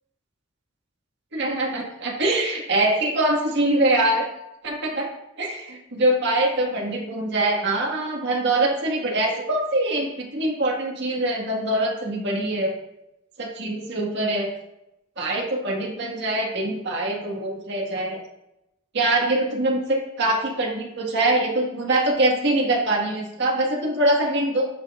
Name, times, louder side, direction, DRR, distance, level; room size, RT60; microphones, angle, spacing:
voice 1, 1.3-4.2 4.6-5.1 5.4-12.7 13.4-14.5 15.2-18.2 18.9-24.6, right 1 dB, 55° right, -1 dB, 1.8 m, -23 dB
10.5 x 6.1 x 2.5 m, 0.87 s
head